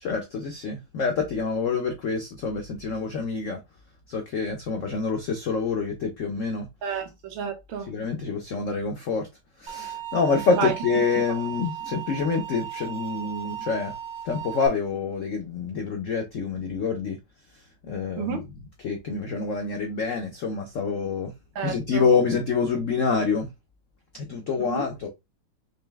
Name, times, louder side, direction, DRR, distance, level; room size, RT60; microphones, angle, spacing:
voice 1, 0.0-3.6 4.1-6.7 7.9-9.3 9.6-13.9 14.2-17.2 17.8-18.4 18.8-21.3 21.6-23.5 24.1-25.1, left 5 dB, 80° left, 0.7 m, -27 dB
voice 2, 6.8-7.9 10.5-10.7 18.1-18.4 21.5-22.1 24.6-24.9, right 7 dB, 75° right, 1.6 m, -30 dB
sound 1, 9.7-14.7, right 10 dB, 60° right, 1.1 m, -36 dB
5.3 x 2.0 x 3.3 m
omnidirectional pair, 2.2 m